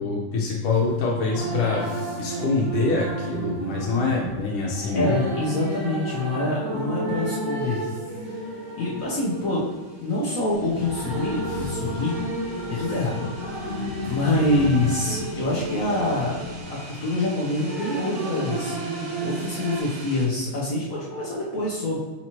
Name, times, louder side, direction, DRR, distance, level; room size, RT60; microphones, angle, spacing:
voice 1, 0.0-1.8 2.2-5.1, left 4 dB, 85° left, -3 dB, 1.6 m, -25 dB
sound 1, 0.7-19.8, right 2 dB, 60° right, 1.8 m, -32 dB
voice 2, 4.9-8.4 8.8-9.7 10.0-12.2 12.6-18.8 19.2-22.0, left 2 dB, 65° left, -6 dB, 0.8 m, -26 dB
sound 2, 7.7-20.3, right 2 dB, 85° right, 2.0 m, -46 dB
sound 3, 10.5-16.6, left 5 dB, 45° left, 0.5 m, -37 dB
5.8 x 2.9 x 2.9 m, 1.3 s
omnidirectional pair, 2.3 m